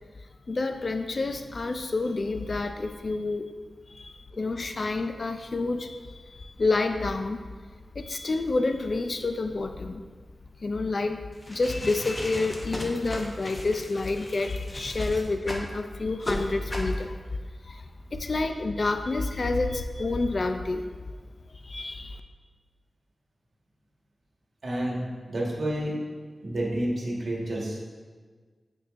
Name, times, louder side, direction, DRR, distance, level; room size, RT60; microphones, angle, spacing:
voice 1, 0.5-3.4 3.9-7.4 8.0-10.0 10.6-17.2 17.6-20.9 21.6-22.2, left 3 dB, 45° left, 7 dB, 0.3 m, -29 dB
sound 1, 11.3-15.7 16.2-16.4 16.7-16.9, left 1 dB, 20° left, 0.7 m, -37 dB
voice 2, 24.6-25.0 25.3-25.9 26.4-27.8, right 1 dB, 60° right, -3 dB, 1.4 m, -29 dB
8.7 x 4.6 x 2.5 m, 1.5 s
wide cardioid pair, 130°, 0 cm